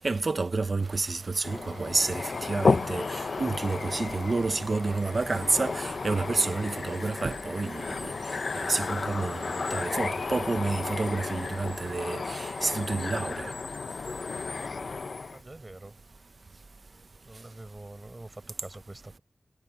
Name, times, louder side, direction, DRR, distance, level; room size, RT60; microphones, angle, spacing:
voice 1, 0.0-8.1 8.5-13.5, right 3 dB, 50° right, 0.9 m, -29 dB
sound 1, 0.8-12.9, right 5 dB, 90° right, 1.0 m, -53 dB
sound 2, 1.4-15.4, left 4 dB, 65° left, 0.8 m, -32 dB
voice 2, 15.3-16.0 17.2-19.2, right 2 dB, 30° right, 5.0 m, -45 dB
wide cardioid pair, 80°, 0 cm